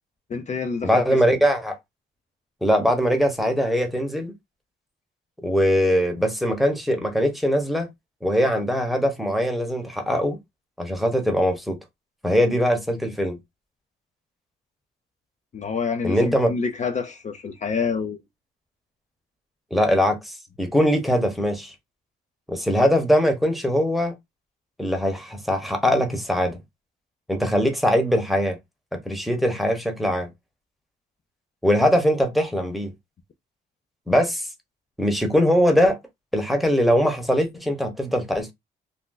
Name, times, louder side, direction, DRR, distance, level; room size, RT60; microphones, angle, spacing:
voice 1, 0.3-1.2 15.5-18.2, left 5 dB, 35° left, 0.5 m, -27 dB
voice 2, 0.8-1.8 2.6-4.3 5.4-7.9 8.2-10.4 10.8-11.8 12.2-13.4 16.0-16.5 19.7-21.7 22.5-24.1 24.8-26.6 27.3-28.6 28.9-30.3 31.6-32.9 34.1-34.5 35.0-36.0 36.3-38.5, equal, ahead, 0.9 m, -21 dB
2.6 x 2.1 x 3.8 m
cardioid pair, 90°, 20 cm